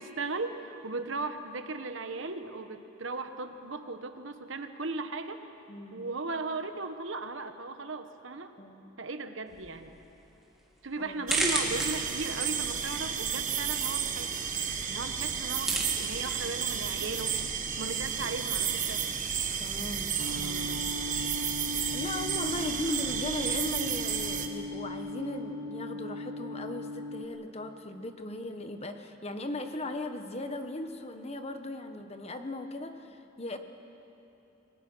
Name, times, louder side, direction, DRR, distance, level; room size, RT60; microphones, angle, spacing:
voice 1, 0.0-5.4 5.9-8.5 9.0-10.0 10.8-14.4 14.9-17.4 17.8-19.0 22.5-22.8, right 3 dB, 65° right, 8 dB, 1.2 m, -37 dB
voice 2, 5.7-6.0 8.6-8.8 11.0-11.2 19.6-20.8 21.9-33.6, left 1 dB, 30° left, 7 dB, 1.1 m, -38 dB
sound 1, 9.5-20.7, right 1 dB, ahead, 2.6 m, -39 dB
sound 2, 11.3-24.5, right 7 dB, 40° right, 1.3 m, -32 dB
sound 3, 20.2-27.3, left 2 dB, 90° right, 1.9 m, -38 dB
28.5 x 21.0 x 6.2 m, 3.0 s
head